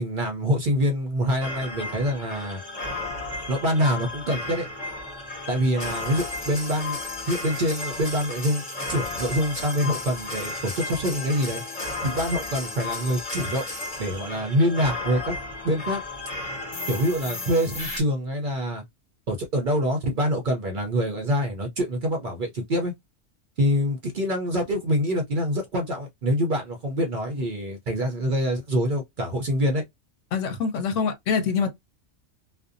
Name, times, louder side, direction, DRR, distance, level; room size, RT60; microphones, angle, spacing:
voice 1, 0.0-2.6 3.5-4.7 5.5-7.0 7.2-8.6 8.9-11.6 12.0-13.7 14.0-15.4 15.6-16.0 16.9-18.8 19.3-22.9 23.6-29.8, equal, 55° right, 0.6 m, -25 dB
sound 1, 1.4-18.0, left 2 dB, 35° left, 1.0 m, -34 dB
voice 2, 30.3-31.7, left 6 dB, 80° left, 1.0 m, -25 dB
2.5 x 2.1 x 2.4 m
omnidirectional pair, 1.3 m